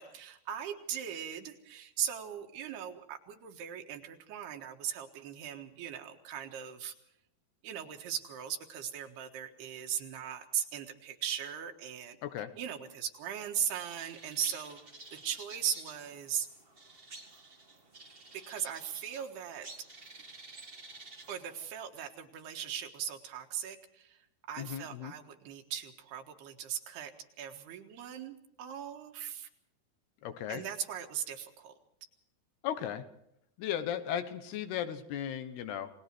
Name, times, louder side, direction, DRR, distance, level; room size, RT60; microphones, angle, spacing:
voice 1, 0.0-6.9 7.6-14.8 15.1-16.5 18.3-19.7 21.3-24.2 24.5-27.1 27.4-29.5 30.5-31.7, right 9 dB, 80° right, 4 dB, 3.6 m, -39 dB
sound 1, 13.7-21.7, right 3 dB, 60° right, 0.6 m, -51 dB
voice 2, 24.6-25.1 30.2-30.6 32.6-33.0 33.6-35.9, left 10 dB, 80° left, 9 dB, 3.3 m, -36 dB
28.5 x 20.0 x 4.6 m, 0.77 s
omnidirectional pair, 4.6 m